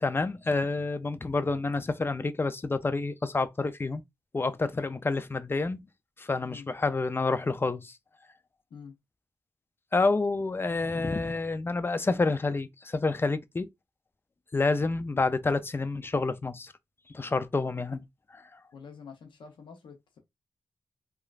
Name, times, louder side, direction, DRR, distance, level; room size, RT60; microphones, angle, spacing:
voice 1, 0.0-4.0 4.3-5.8 6.2-7.9 9.9-13.7 14.5-16.7 17.1-18.0 18.3-18.4, left 3 dB, 30° left, 0.4 m, -28 dB
voice 2, 18.7-20.2, left 6 dB, 85° left, 0.6 m, -47 dB
3.0 x 2.3 x 2.4 m
cardioid pair, 50°, 8 cm